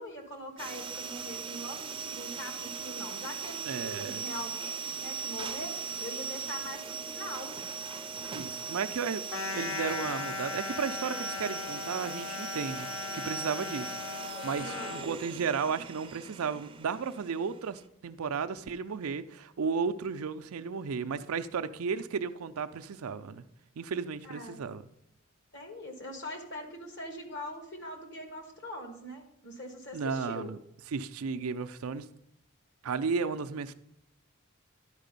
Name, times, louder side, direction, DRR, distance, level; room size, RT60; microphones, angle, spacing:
voice 1, 0.0-5.7 6.0-7.5 14.7-15.0 24.2-24.6 25.5-30.5, left 1 dB, 55° left, 1.6 m, -42 dB
sound 1, 0.6-17.8, right 5 dB, 25° right, 0.5 m, -39 dB
voice 2, 3.6-4.2 8.3-9.2 9.5-12.9 13.1-23.4 23.8-24.8 29.9-30.6 30.9-32.1 32.8-33.7, right 5 dB, 80° right, 0.5 m, -34 dB
sound 2, 9.3-15.1, left 4 dB, 80° left, 1.3 m, -38 dB
11.5 x 4.9 x 5.3 m
head